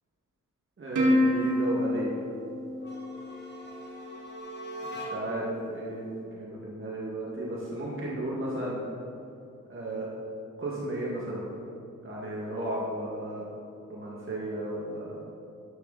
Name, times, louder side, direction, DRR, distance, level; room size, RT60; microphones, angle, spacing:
voice 1, 0.8-2.2 4.8-8.9 9.7-10.1 10.6-11.5 12.0-13.4 13.9-15.2, right 1 dB, 40° right, -5 dB, 2.2 m, -34 dB
Plucked string instrument, 1.0-3.7, left 1 dB, 70° right, 2.4 m, -27 dB
sound 1, 2.7-5.5, right 1 dB, 35° left, 2.1 m, -41 dB
13.0 x 11.5 x 4.2 m, 2.7 s
wide cardioid pair, 165°, 31 cm